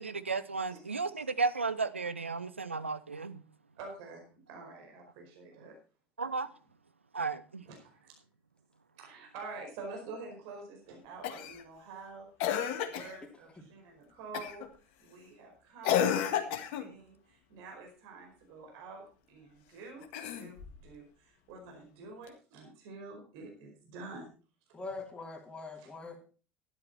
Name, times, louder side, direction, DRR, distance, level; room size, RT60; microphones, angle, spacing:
voice 1, 0.0-3.4 6.2-6.5 7.1-7.6, right 4 dB, 85° right, 0.7 m, -34 dB
voice 2, 3.8-5.7 7.7-8.1 9.0-12.3 12.7-14.6 15.0-24.3 24.7-24.8 25.8-26.0, right 3 dB, 55° right, 4.8 m, -48 dB
Cough, 11.2-11.6 12.4-13.2 14.3-14.7 15.8-16.9 20.0-20.8 22.3-22.4, left 9 dB, 55° left, 1.6 m, -31 dB
voice 3, 24.7-26.2, left 3 dB, 15° left, 3.3 m, -43 dB
12.5 x 10.5 x 4.3 m
figure-of-eight pair, 70°, 6 cm